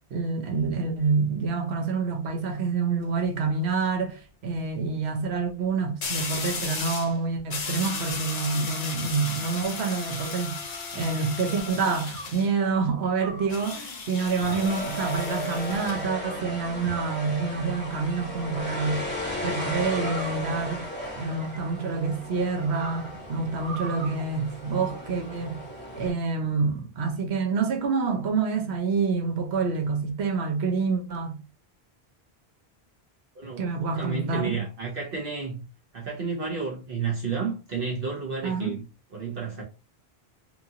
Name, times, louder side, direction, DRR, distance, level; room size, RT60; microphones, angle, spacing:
voice 1, 0.1-10.6 10.9-19.1 19.4-20.8 21.2-25.6 26.0-31.4 33.6-34.6 38.4-38.8, right 4 dB, 90° right, 1.0 m, -27 dB
sound 1, 2.9-3.2 6.0-7.1 7.5-12.5 13.5-16.0, left 4 dB, 45° left, 0.6 m, -35 dB
sound 2, 9.7-11.1 12.1-12.5 13.2-13.6 14.4-14.9 15.5-16.1 16.8-17.6 18.7-19.0 19.8-21.9 22.4-24.2, right 2 dB, 40° right, 0.5 m, -43 dB
sound 3, 14.2-26.1, left 1 dB, 10° left, 0.9 m, -35 dB
voice 2, 33.4-35.6 35.9-38.8 39.1-39.6, right 5 dB, 65° right, 1.0 m, -31 dB
2.9 x 2.4 x 2.7 m
omnidirectional pair, 1.1 m